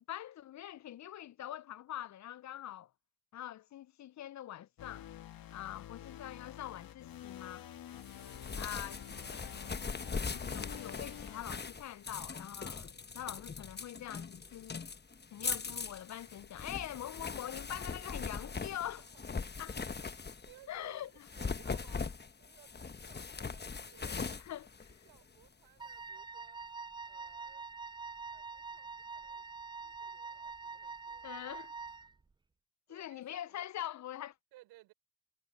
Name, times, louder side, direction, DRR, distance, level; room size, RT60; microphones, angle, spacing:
voice 1, 0.1-2.9 3.3-5.1 5.5-7.7 8.6-9.0 10.3-14.8 15.3-19.0 19.6-19.8 20.7-21.1 24.0-24.7 31.2-31.7 32.9-34.3, left 12 dB, 50° left, 0.6 m, -44 dB
sound 1, 4.8-11.4, left 11 dB, 70° left, 1.7 m, -49 dB
sound 2, 8.0-20.6 21.2-25.5, left 5 dB, 30° left, 1.2 m, -41 dB
voice 2, 8.0-8.3 18.1-18.3 18.6-18.9 19.4-19.6 20.4-24.4 25.0-26.6 27.0-27.6 28.3-29.5 29.8-31.3 32.9-33.7 34.5-34.9, right 17 dB, 85° right, 5.9 m, -62 dB
Wind instrument woodwind instrument, 25.8-32.2, right 4 dB, 15° right, 0.4 m, -45 dB
supercardioid pair, 55°, 36 cm